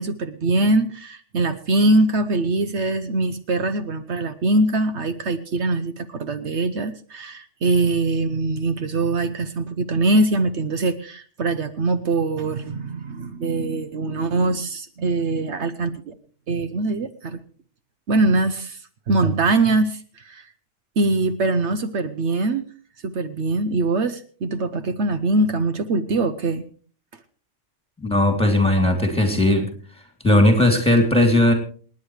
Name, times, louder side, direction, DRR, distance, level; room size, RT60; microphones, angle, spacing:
voice 1, 0.0-16.1 16.5-17.4 18.1-18.8 19.1-20.5 21.0-22.7 23.0-26.6, right 2 dB, 70° right, 10 dB, 1.1 m, -22 dB
voice 2, 28.0-29.7 30.2-31.5, left 1 dB, 5° left, 3 dB, 3.0 m, -17 dB
27.5 x 9.6 x 3.3 m, 0.43 s
omnidirectional pair, 1.2 m